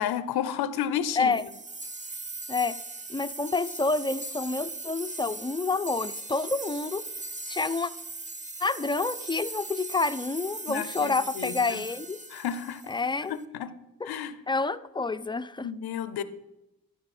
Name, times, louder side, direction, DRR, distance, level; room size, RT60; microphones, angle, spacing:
voice 1, 0.0-1.4 10.7-11.8 12.3-12.8 13.3-13.7 14.0-14.4 15.6-16.2, left 9 dB, 80° left, 15 dB, 0.6 m, -31 dB
sound 1, 1.3-13.3, right 2 dB, 20° right, 0.6 m, -39 dB
voice 2, 3.1-7.0 7.5-7.9 8.6-12.2 12.9-13.4 14.5-15.7, left 3 dB, 15° left, 14 dB, 0.4 m, -28 dB
13.0 x 4.5 x 4.2 m, 0.95 s
cardioid pair, 55°, 38 cm